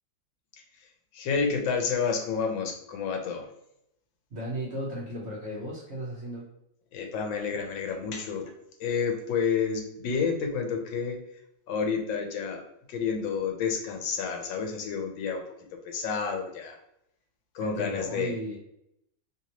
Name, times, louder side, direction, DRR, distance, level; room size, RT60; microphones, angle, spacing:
voice 1, 1.1-3.5 6.9-8.5 8.8-11.2 11.7-12.6 12.9-15.4 15.8-16.8 17.5-18.4, left 6 dB, 85° left, 4 dB, 1.4 m, -29 dB
voice 2, 4.3-6.5 17.6-18.6, right 1 dB, 50° right, -5 dB, 0.8 m, -35 dB
3.3 x 2.9 x 2.8 m, 0.78 s
omnidirectional pair, 2.0 m